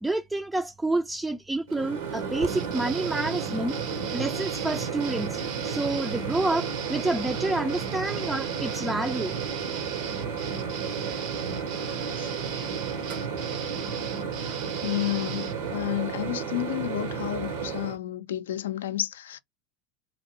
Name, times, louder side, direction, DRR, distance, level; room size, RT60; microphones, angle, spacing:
voice 1, 0.0-3.8 4.1-9.3, right 2 dB, 10° right, 0.3 m, -29 dB
Microwave oven, 1.7-18.0, right 6 dB, 75° right, 1.0 m, -33 dB
sound 1, 2.5-15.6, right 8 dB, 60° right, 0.7 m, -38 dB
voice 2, 13.8-14.2 14.8-19.4, left 13 dB, 80° left, 0.4 m, -31 dB
2.8 x 2.5 x 2.9 m
hypercardioid pair, 95°, 0 cm